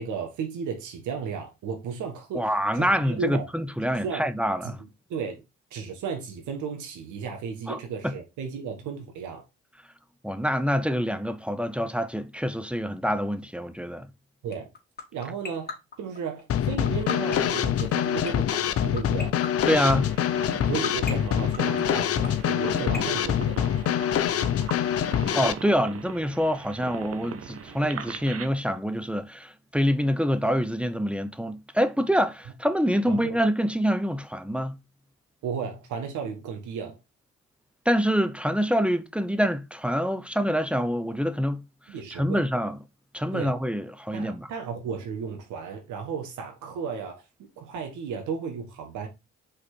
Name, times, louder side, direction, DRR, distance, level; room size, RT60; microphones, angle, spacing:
voice 1, 0.0-3.5 4.0-4.3 4.6-5.4 5.7-9.4 14.4-14.7 15.1-19.4 20.7-24.0 33.1-33.4 35.4-37.0 41.9-42.4 43.3-43.5 44.1-47.2 47.6-49.1, right 6 dB, 70° right, 1.6 m, -34 dB
voice 2, 2.3-4.8 7.7-7.8 8.0-8.1 10.2-14.1 19.7-20.1 25.3-34.7 37.9-41.6 42.2-42.8 43.1-44.5, equal, 5° right, 0.8 m, -26 dB
sound 1, 14.5-24.1, left 5 dB, 30° left, 2.4 m, -34 dB
Drum kit / Snare drum, 16.5-25.5, left 10 dB, 45° left, 0.7 m, -25 dB
sound 2, 19.8-28.5, right 7 dB, 45° right, 1.0 m, -40 dB
5.1 x 4.1 x 4.5 m
hypercardioid pair, 50°, 32 cm